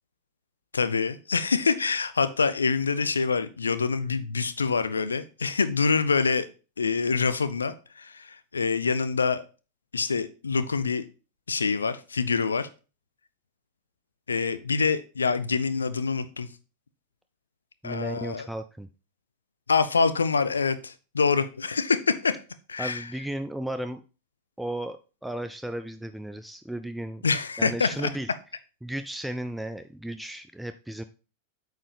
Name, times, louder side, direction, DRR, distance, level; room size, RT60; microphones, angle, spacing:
voice 1, 0.7-6.5 6.8-9.4 9.9-11.0 11.5-12.7 14.3-16.5 17.8-18.5 19.7-22.4 22.7-23.0 27.2-28.1, left 5 dB, 75° left, 13 dB, 0.5 m, -26 dB
voice 2, 17.8-18.9 22.8-24.0 24.6-27.3 27.6-28.3 28.8-31.0, right 1 dB, 5° right, 8 dB, 0.4 m, -34 dB
8.4 x 4.7 x 3.4 m, 0.34 s
figure-of-eight pair, 90°, 0 cm